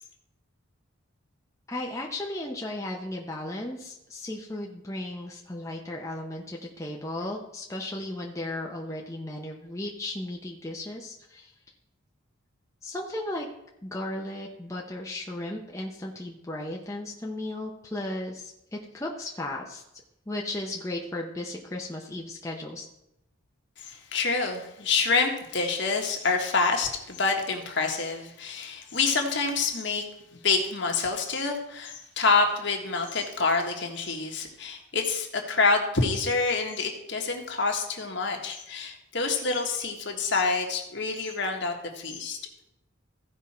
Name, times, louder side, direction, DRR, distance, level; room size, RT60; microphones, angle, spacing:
voice 1, 1.7-11.5 12.8-13.5 13.8-19.8 20.3-22.8, left 1 dB, 15° left, -1 dB, 0.8 m, -35 dB
voice 2, 23.8-30.0 30.3-42.4, left 4 dB, 55° left, 2 dB, 1.5 m, -27 dB
15.0 x 5.4 x 4.3 m, 0.84 s
head